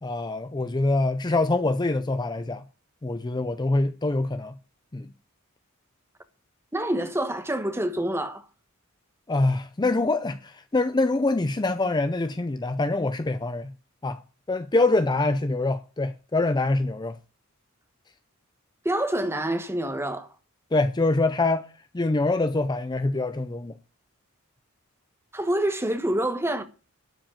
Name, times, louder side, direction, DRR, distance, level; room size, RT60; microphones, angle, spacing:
voice 1, 0.0-2.6 3.0-4.5 4.9-5.1 9.3-13.7 14.0-14.2 14.5-17.2 20.7-21.7 21.9-23.7, left 2 dB, 20° left, 0.5 m, -25 dB
voice 2, 6.7-8.4 18.8-20.3 25.3-26.6, right 1 dB, 10° right, 1.2 m, -27 dB
12.0 x 5.1 x 8.8 m
head